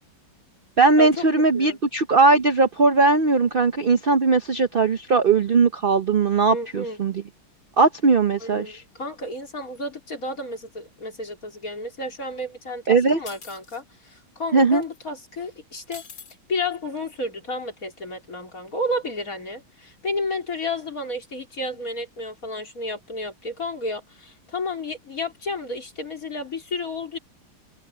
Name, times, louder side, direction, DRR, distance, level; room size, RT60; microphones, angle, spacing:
voice 1, 0.8-7.1 7.8-8.8 12.9-13.2 14.5-14.8, right 4 dB, 70° right, 0.5 m, -19 dB
voice 2, 6.5-7.0 8.4-16.0 16.5-27.2, left 2 dB, 45° left, 4.4 m, -31 dB
sound 1, 13.3-13.8 14.8-15.0 15.9-16.3, left 5 dB, 70° left, 3.4 m, -42 dB
omnidirectional pair, 2.1 m